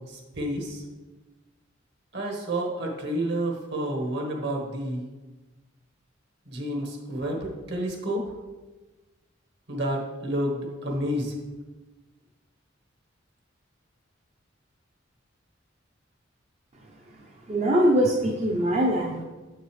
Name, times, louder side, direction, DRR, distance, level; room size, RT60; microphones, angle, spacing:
voice 1, 0.1-0.8 2.1-5.1 6.5-8.2 9.7-11.3, right 1 dB, 60° right, 0 dB, 1.4 m, -30 dB
voice 2, 17.5-19.2, right 1 dB, 35° right, -1 dB, 0.6 m, -22 dB
7.3 x 6.5 x 3.3 m, 1.2 s
head